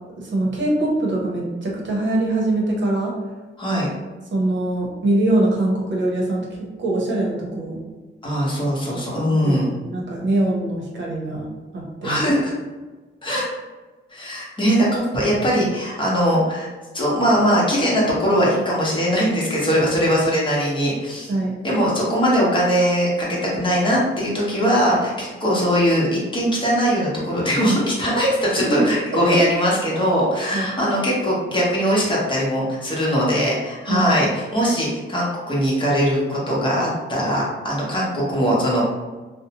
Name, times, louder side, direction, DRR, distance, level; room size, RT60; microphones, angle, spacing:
voice 1, 0.2-3.1 4.3-6.5 6.8-7.8 9.3-11.5 11.7-12.2 21.3-21.5 28.6-28.9 29.2-29.4 30.5-30.7 33.9-34.1, right 1 dB, 60° right, -3 dB, 0.8 m, -23 dB
voice 2, 3.6-3.9 8.2-9.7 12.0-12.5 13.2-13.5 14.1-16.7 16.9-21.3 21.6-38.8, equal, 25° left, -6 dB, 0.9 m, -20 dB
2.6 x 2.1 x 2.8 m, 1.3 s
wide cardioid pair, 130°, 21 cm